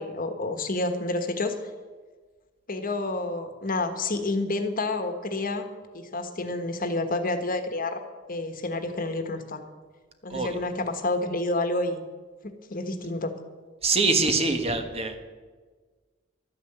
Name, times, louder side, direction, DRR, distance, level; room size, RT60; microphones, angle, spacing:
voice 1, 0.0-1.5 2.7-5.7 5.9-8.0 8.3-9.6 10.2-12.0 12.4-13.3, left 2 dB, 45° left, 7 dB, 1.4 m, -29 dB
voice 2, 13.8-15.2, right 3 dB, 30° right, 6 dB, 1.4 m, -24 dB
12.5 x 9.6 x 8.0 m, 1.4 s
head